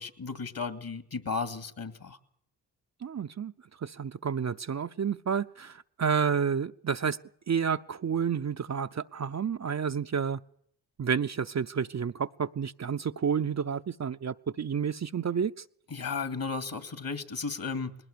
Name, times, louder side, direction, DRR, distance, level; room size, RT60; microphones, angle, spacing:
voice 1, 0.0-2.2 15.9-18.0, left 4 dB, 50° left, 10 dB, 2.6 m, -34 dB
voice 2, 3.0-3.5 3.8-7.2 7.5-10.4 11.0-15.5, right 7 dB, 40° right, 8 dB, 0.7 m, -30 dB
20.5 x 18.0 x 7.0 m, 0.67 s
supercardioid pair, 40°, 44 cm